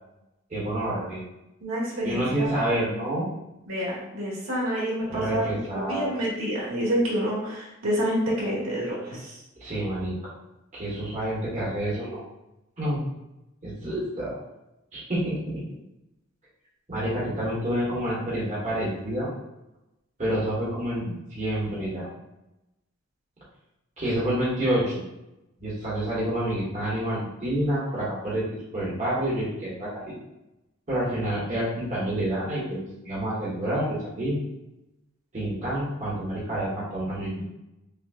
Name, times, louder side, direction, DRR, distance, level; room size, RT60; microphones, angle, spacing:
voice 1, 0.5-1.2 2.0-3.3 5.0-6.1 9.6-10.3 10.7-12.2 12.8-13.0 13.6-14.4 14.9-15.6 16.9-19.3 20.2-22.1 24.0-24.9 25.6-28.4 28.7-30.1 30.9-34.4 35.3-37.5, right 1 dB, 35° right, -8 dB, 1.2 m, -28 dB
voice 2, 1.6-2.5 3.7-9.4, equal, 80° right, -6 dB, 1.5 m, -28 dB
5.7 x 2.3 x 2.4 m, 0.93 s
head